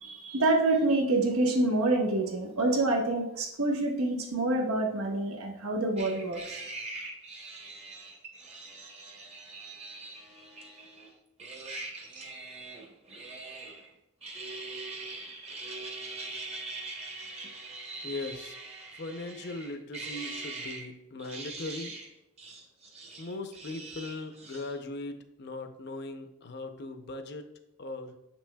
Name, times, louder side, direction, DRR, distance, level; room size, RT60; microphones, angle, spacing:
voice 1, 0.0-6.6, right 2 dB, 85° right, 1 dB, 1.1 m, -27 dB
sound 1, 6.0-11.1 11.4-13.9 14.2-20.9 21.2-22.1 22.4-24.8, right 3 dB, 30° right, 0.9 m, -42 dB
voice 2, 18.0-18.6 18.9-21.9 23.2-27.5 27.8-28.2, left 2 dB, 50° left, 7 dB, 0.6 m, -39 dB
7.4 x 5.9 x 2.3 m, 0.88 s
head